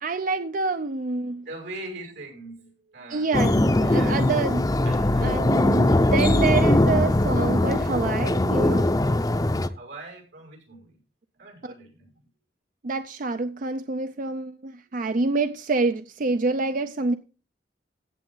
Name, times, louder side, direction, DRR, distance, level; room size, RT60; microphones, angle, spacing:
voice 1, 0.0-1.5 3.1-3.5 3.9-4.6 5.2-8.9 11.6-11.7 12.8-17.1, right 3 dB, 50° right, 0.5 m, -27 dB
voice 2, 1.4-3.4 3.8-4.2 4.8-5.5 6.0-6.3 9.6-11.0 11.4-12.3, right 2 dB, 85° right, 6.0 m, -41 dB
sound 1, 3.3-9.7, left 1 dB, 20° left, 0.6 m, -21 dB
15.0 x 7.7 x 3.9 m
head